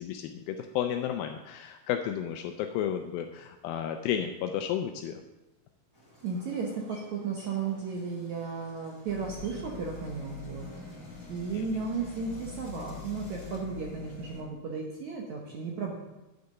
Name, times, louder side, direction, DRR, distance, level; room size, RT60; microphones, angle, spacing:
voice 1, 0.0-5.2 11.5-11.6, left 9 dB, 80° left, 5 dB, 2.3 m, -32 dB
sound 1, 5.9-13.6, equal, 10° left, 1.9 m, -55 dB
voice 2, 6.2-10.9 11.3-16.0, right 5 dB, 70° right, -1 dB, 1.9 m, -34 dB
sound 2, 9.1-14.4, left 5 dB, 50° left, 2.8 m, -44 dB
9.0 x 6.7 x 5.5 m, 1.0 s
omnidirectional pair, 4.4 m